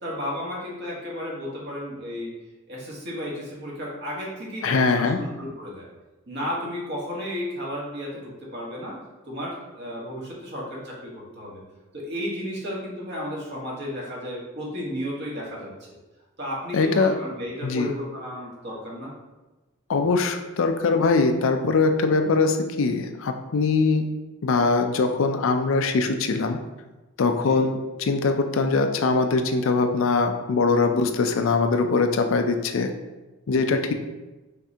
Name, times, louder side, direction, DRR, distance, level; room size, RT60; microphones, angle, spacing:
voice 1, 0.0-2.3 2.7-5.9 6.3-8.9 9.3-11.6 11.9-15.7 16.4-19.1 27.3-27.6 33.6-33.7, equal, 55° right, -4 dB, 1.4 m, -33 dB
voice 2, 4.6-5.2 16.7-17.1 17.6-17.9 19.9-24.0 24.4-26.6 27.2-32.9 33.5-33.9, left 4 dB, 65° left, 6 dB, 0.4 m, -22 dB
5.8 x 3.2 x 2.8 m, 1.1 s
head